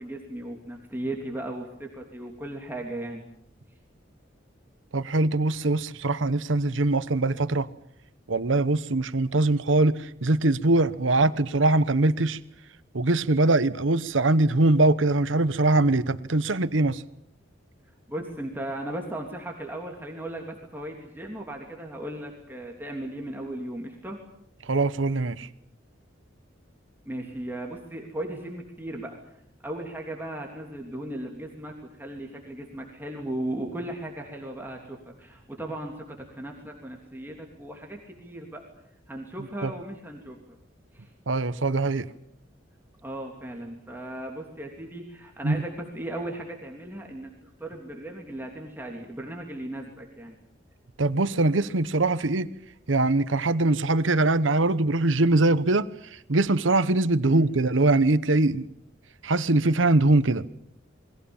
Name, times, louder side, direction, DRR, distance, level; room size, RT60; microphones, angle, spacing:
voice 1, 0.0-3.2 18.1-24.2 27.0-29.2 29.6-38.7 39.1-40.4 40.9-41.1 43.0-47.3 47.6-50.4 57.3-57.5, right 1 dB, 10° right, 3.1 m, -36 dB
voice 2, 4.9-7.7 8.3-12.4 12.9-17.0 24.6-25.5 39.6-39.7 41.3-42.1 45.4-45.6 51.0-52.5 52.9-58.7 59.2-60.4, right 2 dB, 85° right, 1.0 m, -22 dB
28.5 x 22.0 x 7.2 m
head